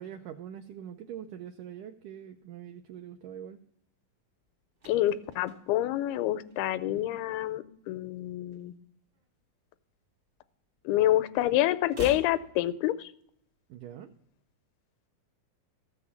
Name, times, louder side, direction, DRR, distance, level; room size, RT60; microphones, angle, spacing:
voice 1, 0.0-3.6 13.7-14.1, right 9 dB, 85° right, 6 dB, 1.8 m, -43 dB
sound 1, 4.4-7.1 7.4-7.7 7.9-9.4 9.7-11.0 11.3-13.4 13.7-13.8, left 2 dB, 45° right, 0.8 m, -48 dB
voice 2, 4.9-8.7 10.9-13.1, left 13 dB, 90° left, 13 dB, 2.6 m, -27 dB
14.0 x 6.6 x 7.1 m, 0.73 s
omnidirectional pair, 4.3 m